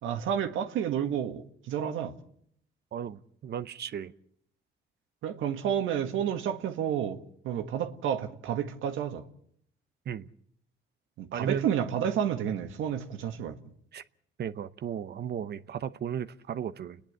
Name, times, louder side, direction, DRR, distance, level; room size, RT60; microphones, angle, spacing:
voice 1, 0.0-2.1 5.2-7.2 7.4-9.2 11.2-13.6, right 9 dB, 85° right, 1.7 m, -30 dB
voice 2, 2.9-4.1 10.1-10.3 11.3-11.7 13.9-14.0 14.4-17.0, right 8 dB, 55° right, 0.8 m, -35 dB
29.5 x 10.5 x 8.7 m
cardioid pair, 90°, 20 cm